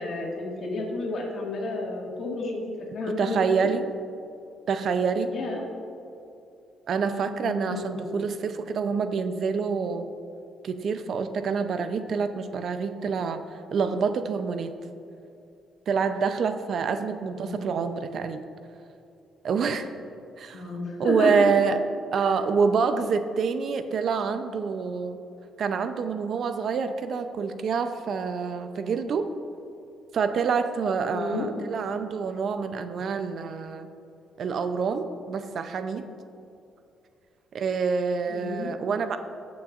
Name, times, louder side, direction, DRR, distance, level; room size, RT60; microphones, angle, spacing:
voice 1, 0.0-3.5 5.3-5.6 7.2-8.2 17.3-17.7 20.5-21.6 22.2-22.3 31.1-31.5 38.3-38.7, left 2 dB, 60° left, -1 dB, 1.8 m, -31 dB
voice 2, 3.1-3.9 4.7-5.3 6.9-10.1 10.6-13.4 13.7-14.7 15.9-18.4 19.4-19.9 20.4-20.6 21.0-21.8 22.1-25.2 25.6-29.3 30.1-33.9 34.4-36.1 37.5-39.2, right 5 dB, 60° right, 9 dB, 0.5 m, -27 dB
16.5 x 6.2 x 2.5 m, 2.6 s
cardioid pair, 90°, 0 cm